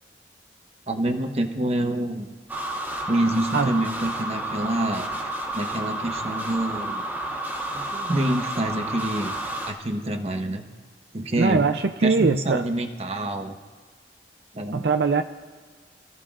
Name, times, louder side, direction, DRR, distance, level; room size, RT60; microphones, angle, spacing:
voice 1, 0.9-2.3 3.1-7.0 7.7-9.3 9.7-10.6 11.1-11.7 12.0-13.6 14.5-14.8, right 1 dB, 35° right, 5 dB, 1.1 m, -27 dB
sound 1, 2.5-9.7, right 1 dB, 10° right, 2.0 m, -31 dB
voice 2, 11.4-12.6 14.7-15.2, right 4 dB, 70° right, 7 dB, 0.5 m, -21 dB
26.0 x 15.0 x 2.5 m, 1.5 s
head